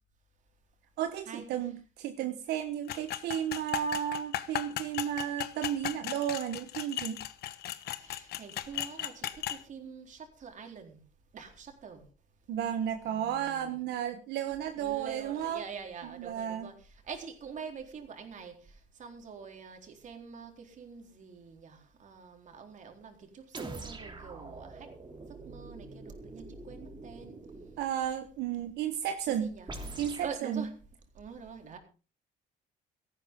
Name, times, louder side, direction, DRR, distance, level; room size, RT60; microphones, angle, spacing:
voice 1, 1.0-7.2 12.5-15.6 16.2-16.7 27.8-29.5 30.0-30.6, right 10 dB, 80° right, 1.3 m, -33 dB
sound 1, 2.9-9.6, left 12 dB, 70° left, 1.3 m, -36 dB
voice 2, 8.0-11.0 11.3-12.0 13.0-13.9 14.8-24.9 25.2-27.5 29.2-29.7 30.2-30.8 31.1-31.8, right 6 dB, 45° right, 4.0 m, -45 dB
sound 2, 23.5-27.8 29.7-30.4, right 2 dB, 25° right, 3.2 m, -44 dB
17.0 x 14.0 x 3.8 m
cardioid pair, 110°, 17 cm